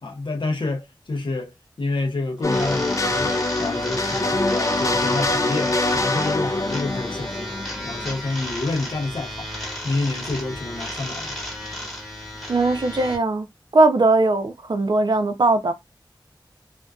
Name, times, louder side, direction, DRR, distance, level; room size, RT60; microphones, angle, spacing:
voice 1, 0.0-3.3 3.6-7.5 7.8-9.5 9.8-11.4, left 2 dB, 75° left, 0.7 m, -28 dB
sound 1, 2.4-8.2, left 2 dB, 40° left, 0.3 m, -24 dB
sound 2, 2.4-13.2, left 1 dB, 5° left, 1.2 m, -33 dB
voice 2, 12.5-13.5 13.7-15.7, right 2 dB, 60° right, 0.5 m, -19 dB
2.5 x 2.1 x 2.3 m
wide cardioid pair, 65°, 8 cm